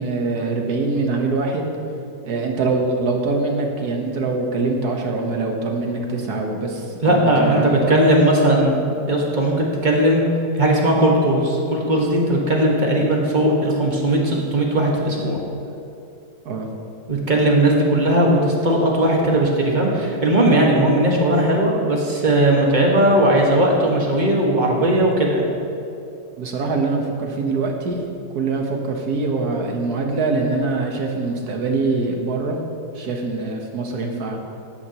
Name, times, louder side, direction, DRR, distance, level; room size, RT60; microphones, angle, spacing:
voice 1, 0.0-1.7 2.2-7.9 16.4-16.7 26.4-28.0 28.3-32.6 32.9-34.4, right 3 dB, 65° right, 2 dB, 1.7 m, -23 dB
voice 2, 7.0-8.7 9.1-10.2 10.6-15.4 17.1-25.4, right 1 dB, 30° right, -1 dB, 1.6 m, -18 dB
14.5 x 10.5 x 3.0 m, 2.7 s
omnidirectional pair, 1.8 m